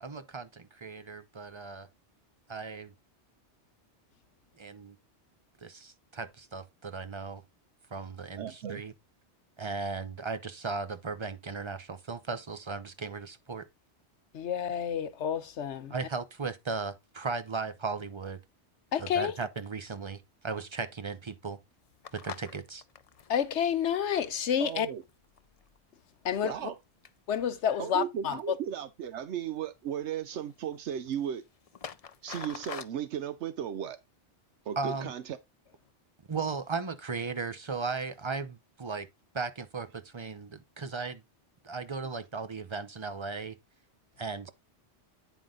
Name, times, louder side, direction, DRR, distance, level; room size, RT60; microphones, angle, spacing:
voice 1, 0.0-1.9 2.5-2.9 4.6-5.0 5.6-7.4 7.9-8.9 9.6-13.7 15.9-18.4 19.0-21.6 22.1-22.8 34.8-35.1 36.3-39.1 39.3-41.2 41.6-43.6 44.2-44.5, right 4 dB, 30° right, 0.7 m, -36 dB
voice 2, 8.3-8.8 24.6-25.0 26.4-26.8 27.8-31.4 32.2-34.0 34.7-35.4, right 9 dB, 80° right, 1.0 m, -35 dB
voice 3, 14.3-15.9 18.9-19.4 23.3-24.9 26.2-26.7 27.3-28.4, left 8 dB, 75° left, 1.2 m, -29 dB
sound 1, 21.8-25.8 26.2-26.8 27.0-28.4 29.0-29.6 29.8-30.0 30.3-32.8, left 6 dB, 40° left, 0.6 m, -47 dB
9.2 x 5.2 x 3.7 m
omnidirectional pair, 1.2 m